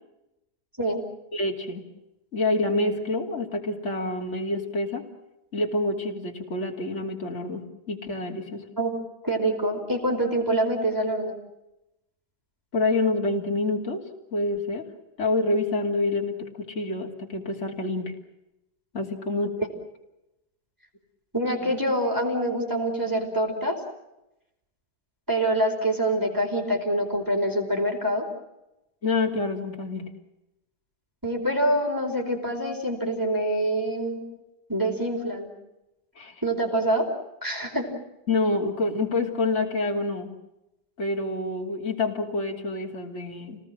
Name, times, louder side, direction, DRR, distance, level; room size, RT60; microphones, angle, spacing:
voice 1, 1.3-1.8 2.3-5.0 5.5-8.6 12.7-14.0 14.3-14.8 15.2-18.1 18.9-19.5 29.0-30.1 36.2-36.4 38.3-40.3 41.0-43.6, left 2 dB, 40° left, 1 dB, 3.3 m, -27 dB
voice 2, 9.2-11.3 21.3-23.8 25.3-28.3 31.2-34.2 34.7-35.5 36.4-37.1 37.4-37.9, right 1 dB, 10° right, 1 dB, 4.8 m, -25 dB
29.0 x 19.5 x 7.7 m, 0.92 s
omnidirectional pair, 1.8 m